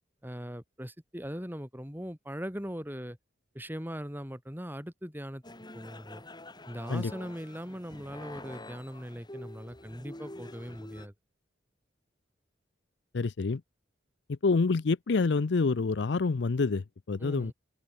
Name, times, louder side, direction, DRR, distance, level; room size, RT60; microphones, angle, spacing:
voice 1, 0.2-3.2 3.5-5.4 5.7-6.2 6.7-11.1 17.2-17.5, equal, 10° right, 7.1 m, -40 dB
sound 1, 5.4-11.1, left 1 dB, 25° left, 4.5 m, -47 dB
voice 2, 13.1-13.6 14.3-17.5, left 4 dB, 65° left, 0.5 m, -27 dB
open air
head